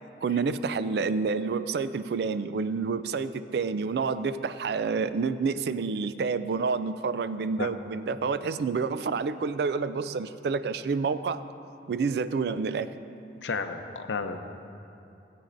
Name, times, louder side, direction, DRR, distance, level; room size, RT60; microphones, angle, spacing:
voice 1, 0.2-11.4 11.9-12.9, right 5 dB, 65° right, 13 dB, 0.3 m, -28 dB
voice 2, 13.4-14.4, left 4 dB, 90° left, 7 dB, 0.6 m, -32 dB
17.0 x 8.5 x 2.6 m, 2.6 s
head